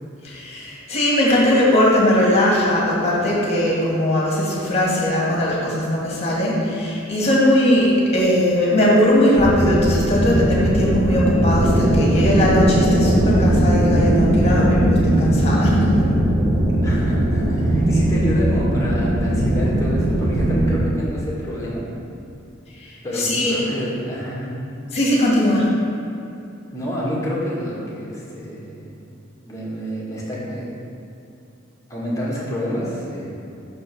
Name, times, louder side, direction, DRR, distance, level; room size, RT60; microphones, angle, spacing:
voice 1, 0.2-16.0 23.1-23.6 24.9-25.7, left 1 dB, 30° left, -5 dB, 1.7 m, -19 dB
sound 1, 9.4-20.9, right 1 dB, 40° right, 0.8 m, -18 dB
voice 2, 16.8-21.9 23.0-24.6 26.7-28.9 29.4-30.8 31.9-33.3, equal, 15° left, -6 dB, 1.5 m, -28 dB
6.4 x 4.4 x 6.0 m, 2.8 s
head